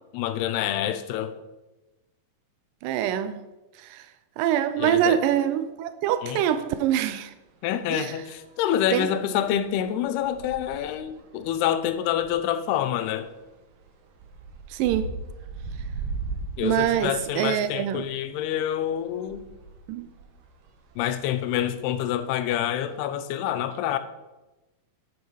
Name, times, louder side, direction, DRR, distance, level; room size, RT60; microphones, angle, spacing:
voice 1, 0.1-1.3 4.8-5.2 6.2-6.4 7.6-13.3 16.6-19.4 21.0-24.0, left 10 dB, 85° left, 2.8 m, -27 dB
voice 2, 2.8-3.4 3.8-4.1 4.4-7.3 7.9-8.1 8.9-9.1 14.7-15.1 16.6-18.1 19.9-20.1, right 11 dB, 85° right, 2.0 m, -25 dB
sound 1, 6.7-7.0 8.1-8.6 9.1-18.3 18.5-23.0, right 4 dB, 65° right, 2.5 m, -39 dB
11.0 x 9.3 x 4.8 m
omnidirectional pair, 4.5 m